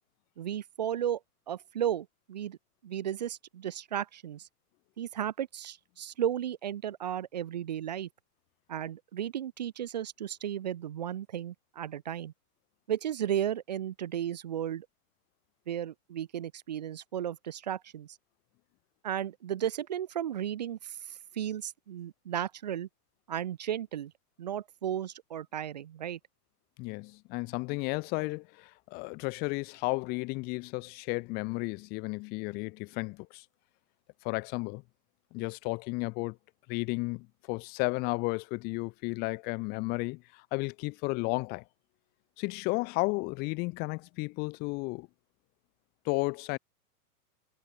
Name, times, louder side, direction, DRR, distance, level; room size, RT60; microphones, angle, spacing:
voice 1, 0.4-1.2 1.5-2.6 2.8-4.5 5.0-8.1 8.7-12.3 12.9-14.9 15.7-18.2 19.0-22.9 23.3-24.1 24.4-26.2, right 10 dB, 30° right, 0.5 m, -34 dB
voice 2, 26.8-33.4 34.2-34.8 35.3-36.4 36.7-41.6 42.4-45.1 46.0-46.6, left 27 dB, 20° left, 1.1 m, -33 dB
supercardioid pair, 175°, 47 cm